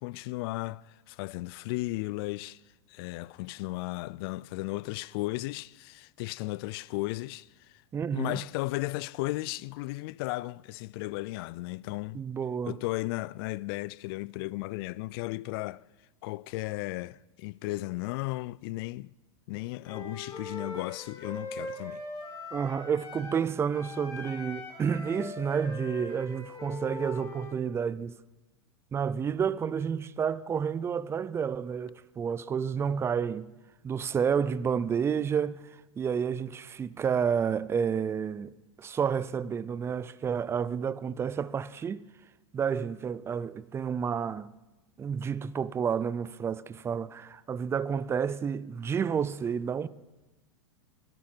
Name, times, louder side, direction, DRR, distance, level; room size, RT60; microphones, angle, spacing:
voice 1, 0.0-2.6 2.9-7.5 8.1-12.2 12.7-15.8 16.2-19.1 19.5-22.0, left 20 dB, 55° left, 0.4 m, -35 dB
voice 2, 7.9-8.4 12.1-12.8 22.5-28.2 28.9-33.5 33.8-38.5 38.8-42.0 42.5-44.5 45.0-49.9, right 7 dB, 15° right, 0.5 m, -30 dB
Wind instrument woodwind instrument, 19.8-23.4 23.7-27.6, left 2 dB, 25° left, 3.9 m, -41 dB
22.5 x 12.0 x 4.5 m
hypercardioid pair, 120°, 15 cm